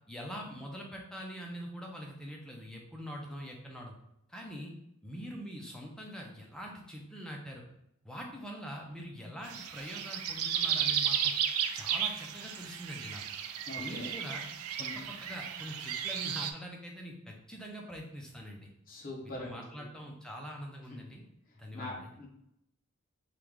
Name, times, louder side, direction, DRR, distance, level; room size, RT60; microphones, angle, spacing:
voice 1, 0.1-3.9 4.3-4.7 5.0-7.6 8.0-11.3 11.7-13.2 13.8-14.4 14.8-18.7 19.2-21.2 21.5-22.1, equal, 5° left, -1 dB, 0.4 m, -44 dB
sound 1, 9.5-16.5, right 8 dB, 75° right, 0.3 m, -34 dB
voice 2, 13.7-14.1 14.8-15.1 18.9-19.5 20.9-21.0 21.7-22.3, left 1 dB, 40° left, -3 dB, 0.8 m, -42 dB
3.1 x 2.4 x 3.5 m, 0.80 s
head